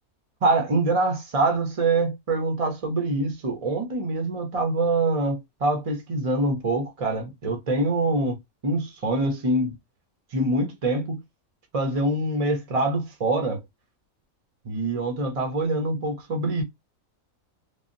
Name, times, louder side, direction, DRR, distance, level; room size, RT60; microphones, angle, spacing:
voice 1, 0.4-8.4 8.6-9.7 10.3-11.2 11.7-13.6 14.6-16.6, right 2 dB, 40° right, 0.5 m, -25 dB
3.3 x 2.0 x 2.6 m
omnidirectional pair, 1.4 m